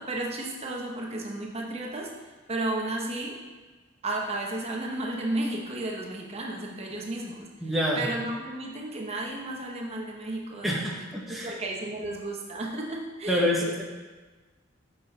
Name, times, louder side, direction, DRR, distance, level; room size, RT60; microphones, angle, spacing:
voice 1, 0.0-2.1 2.5-3.4 4.0-13.7, right 2 dB, 30° right, -1 dB, 0.8 m, -33 dB
voice 2, 7.6-8.1 10.6-11.5 13.3-13.8, equal, ahead, -3 dB, 0.8 m, -27 dB
6.0 x 5.6 x 4.3 m, 1.3 s
head